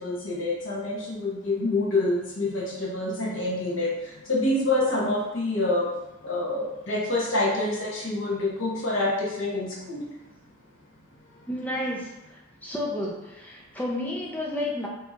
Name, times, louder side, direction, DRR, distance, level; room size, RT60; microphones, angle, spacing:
voice 1, 0.0-3.9 4.3-5.8 6.2-10.0, left 2 dB, 65° left, -5 dB, 1.1 m, -26 dB
voice 2, 11.5-14.9, left 1 dB, 10° left, -3 dB, 0.5 m, -31 dB
4.3 x 2.9 x 2.4 m, 0.95 s
head